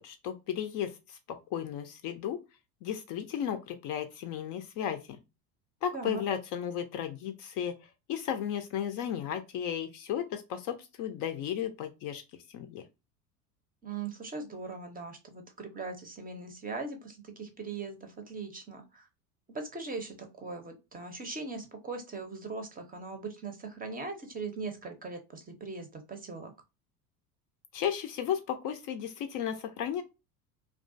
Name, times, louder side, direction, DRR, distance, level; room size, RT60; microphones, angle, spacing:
voice 1, 0.0-2.4 2.8-5.2 5.8-7.8 8.1-12.2 12.5-12.8 27.7-30.0, left 9 dB, 45° left, 0.4 m, -34 dB
voice 2, 5.9-6.2 13.8-19.0 19.5-26.5, right 4 dB, 20° right, 0.6 m, -40 dB
2.3 x 2.2 x 2.5 m
hypercardioid pair, 85°, 46 cm